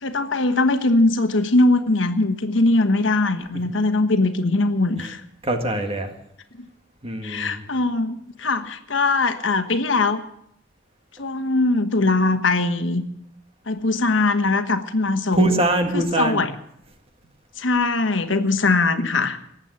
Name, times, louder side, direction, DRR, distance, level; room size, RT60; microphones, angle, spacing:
voice 1, 0.0-5.2 7.2-10.2 11.2-13.0 13.7-15.5 15.9-16.5 17.6-19.4, left 2 dB, 75° left, 9 dB, 1.3 m, -21 dB
voice 2, 5.4-6.1 7.0-7.6 15.3-16.5, right 1 dB, 30° right, 5 dB, 1.9 m, -23 dB
19.0 x 8.2 x 7.8 m, 0.74 s
head